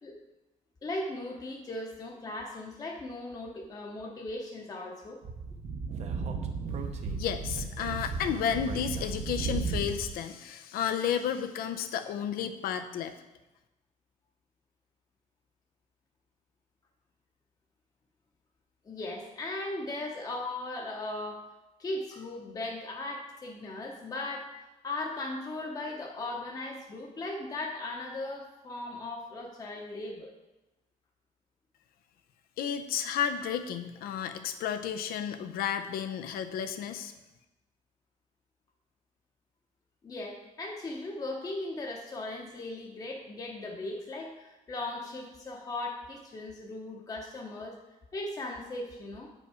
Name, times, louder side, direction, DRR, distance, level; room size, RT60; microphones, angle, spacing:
voice 1, 0.8-5.2 18.8-21.4 21.8-24.5 24.8-30.3 40.0-47.8 48.1-49.3, left 2 dB, 25° left, 0 dB, 0.8 m, -38 dB
Speech / Wind, 5.2-10.1, right 4 dB, 50° right, 0.8 m, -35 dB
voice 2, 7.2-13.1 32.6-37.1, left 8 dB, 85° left, 9 dB, 0.7 m, -32 dB
8.1 x 5.4 x 4.8 m, 1.0 s
cardioid pair, 150°, 15 cm